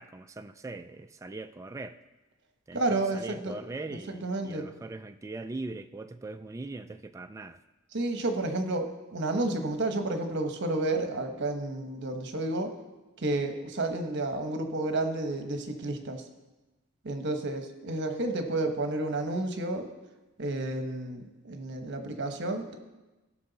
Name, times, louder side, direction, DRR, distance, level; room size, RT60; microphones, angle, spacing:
voice 1, 0.0-2.0 2.7-7.6, right 2 dB, 15° right, 8 dB, 0.3 m, -41 dB
voice 2, 2.7-3.6 3.9-4.6 7.9-12.7 13.2-16.2 17.0-19.9 20.4-22.8, right 2 dB, 60° right, 6 dB, 1.1 m, -31 dB
17.5 x 6.3 x 4.0 m, 1.1 s
head